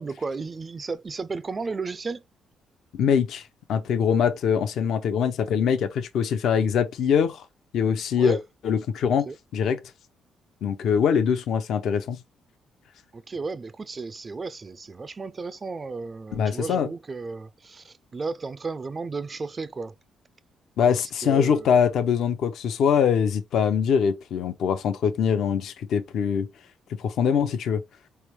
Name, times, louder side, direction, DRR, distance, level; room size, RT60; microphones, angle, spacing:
voice 1, 0.0-2.2 8.2-8.4 9.0-9.4 13.1-19.9 20.8-21.8, right 4 dB, 30° right, 0.3 m, -34 dB
voice 2, 2.9-7.4 7.7-8.4 8.6-9.3 9.5-9.8 10.6-12.2 16.3-16.9 20.8-26.5 26.9-27.8, left 7 dB, 75° left, 0.6 m, -23 dB
4.5 x 3.3 x 3.1 m
cardioid pair, 90°, 0 cm